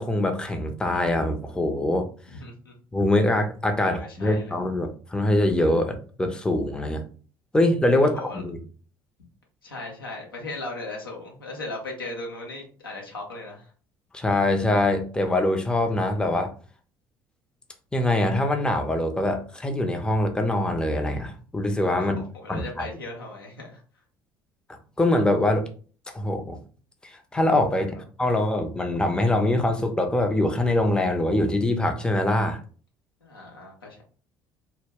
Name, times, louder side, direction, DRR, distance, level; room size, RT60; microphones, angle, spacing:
voice 1, 0.0-2.1 2.9-7.0 7.5-8.6 14.1-16.5 17.9-22.2 22.5-22.6 25.0-25.7 26.1-26.6 27.0-27.9 28.2-32.6, left 1 dB, 5° left, 0.5 m, -23 dB
voice 2, 2.3-2.7 3.8-4.5 8.0-8.4 9.6-13.7 22.0-23.8 27.7-27.9 33.2-34.0, left 2 dB, 85° left, 0.6 m, -37 dB
2.1 x 2.0 x 3.3 m
figure-of-eight pair, 55°, 12 cm